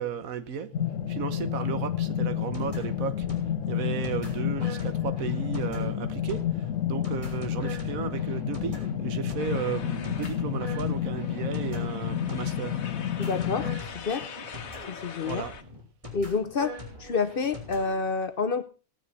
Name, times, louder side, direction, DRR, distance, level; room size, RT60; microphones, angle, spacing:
voice 1, 0.0-12.9 15.2-15.6, right 7 dB, 80° right, 1.4 m, -34 dB
sound 1, 0.7-13.8, left 10 dB, 70° left, 1.1 m, -30 dB
sound 2, 2.0-17.9, left 1 dB, 25° right, 3.2 m, -43 dB
sound 3, 9.4-15.6, left 6 dB, 90° left, 1.5 m, -44 dB
voice 2, 13.2-14.3 14.9-15.4 16.1-18.6, left 4 dB, 50° left, 0.8 m, -29 dB
16.5 x 9.4 x 4.1 m
omnidirectional pair, 1.4 m